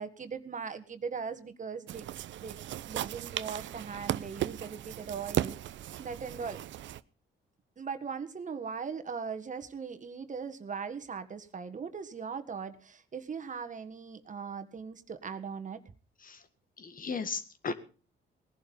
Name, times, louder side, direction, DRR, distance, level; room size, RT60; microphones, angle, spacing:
voice 1, 0.0-2.1 2.4-2.6 2.9-6.6 7.8-15.8, right 6 dB, 40° right, 9 dB, 1.6 m, -39 dB
sound 1, 1.9-7.0, right 12 dB, 70° right, 0.7 m, -36 dB
voice 2, 16.8-17.7, left 4 dB, 45° left, 10 dB, 1.9 m, -35 dB
18.5 x 11.5 x 5.5 m, 0.38 s
cardioid pair, 90°, 20 cm